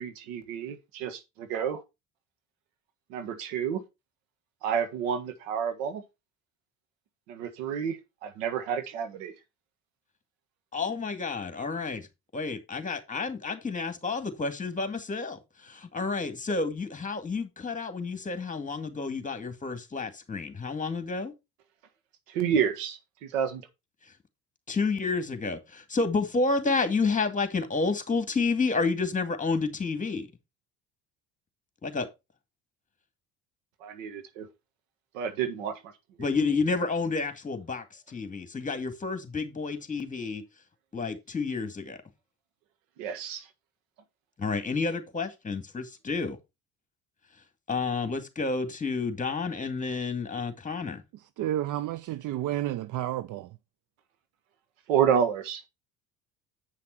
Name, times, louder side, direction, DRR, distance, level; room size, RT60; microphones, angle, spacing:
voice 1, 0.0-1.8 3.1-3.8 4.6-6.0 7.3-9.3 22.3-23.6 33.8-34.5 35.1-35.8 43.0-43.5 54.9-55.6, right 8 dB, 85° right, 1.7 m, -29 dB
voice 2, 10.7-12.1 12.3-21.3 24.7-30.3 31.8-32.1 36.2-40.4 40.9-42.0 44.4-46.4 47.7-51.0, left 4 dB, 20° left, 2.2 m, -30 dB
voice 3, 51.4-53.5, right 13 dB, 55° right, 0.6 m, -31 dB
8.8 x 5.8 x 4.4 m
hypercardioid pair, 70°, 37 cm